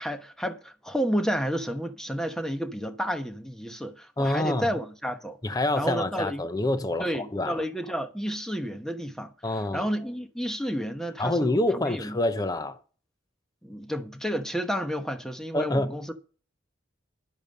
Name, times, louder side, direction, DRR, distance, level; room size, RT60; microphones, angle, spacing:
voice 1, 0.0-5.4 5.8-6.4 7.0-9.3 9.7-12.2 13.6-16.1, equal, 5° left, 1.1 m, -31 dB
voice 2, 4.2-4.7 5.4-7.6 9.4-9.9 11.2-12.8 15.5-16.0, left 1 dB, 20° left, 0.7 m, -27 dB
11.0 x 8.8 x 5.4 m
head